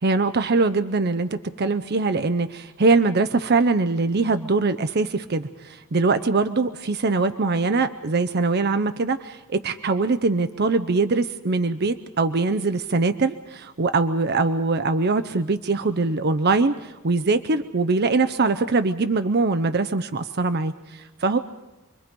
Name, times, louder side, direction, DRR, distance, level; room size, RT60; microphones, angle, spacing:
voice 1, 0.0-21.4, right 3 dB, 50° right, 9 dB, 0.7 m, -22 dB
28.0 x 21.5 x 5.3 m, 1.0 s
head